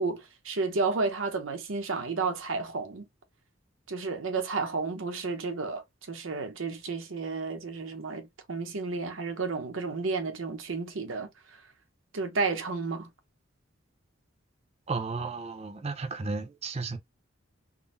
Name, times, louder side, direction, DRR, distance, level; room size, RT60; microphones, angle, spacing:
voice 1, 0.0-3.1 3.9-11.3 12.1-13.1, right 4 dB, 80° right, 0.8 m, -32 dB
voice 2, 14.9-17.0, right 3 dB, 35° right, 0.6 m, -33 dB
3.7 x 2.0 x 2.5 m
head